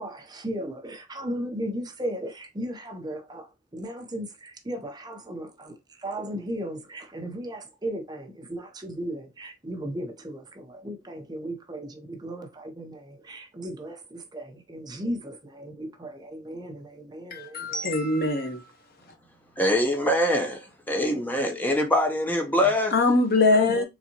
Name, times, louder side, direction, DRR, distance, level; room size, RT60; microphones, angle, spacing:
voice 1, 0.0-17.9 23.5-23.8, right 1 dB, 20° right, 0.7 m, -36 dB
voice 2, 17.3-18.6 22.9-23.8, left 3 dB, 55° left, 1.0 m, -22 dB
voice 3, 19.6-22.9, left 1 dB, 10° left, 0.8 m, -24 dB
4.1 x 3.5 x 2.9 m
head